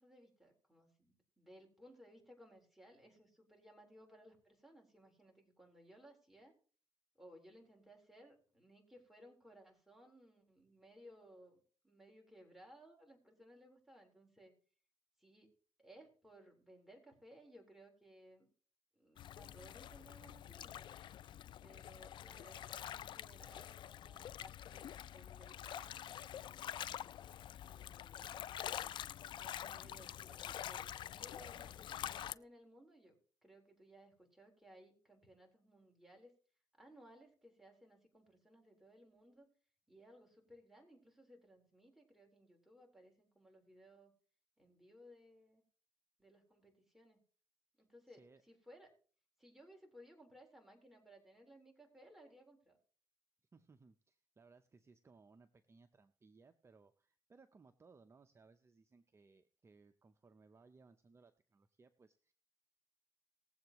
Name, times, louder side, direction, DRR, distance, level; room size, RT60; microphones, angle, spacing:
voice 1, 0.0-6.5 7.2-14.5 15.2-15.5 15.8-18.5 19.0-20.9 21.6-26.9 27.6-28.3 29.3-36.3 36.8-39.5 39.9-44.1 44.6-45.6 46.2-47.2 47.8-48.9 49.4-52.8, equal, 5° right, 1 dB, 4.1 m, -61 dB
sound 1, 19.2-32.3, left 11 dB, 65° left, 0.4 m, -47 dB
voice 2, 48.1-48.4 53.5-62.3, right 4 dB, 30° right, 9 dB, 0.8 m, -65 dB
19.5 x 7.9 x 3.1 m, 0.42 s
cardioid pair, 80°, 9 cm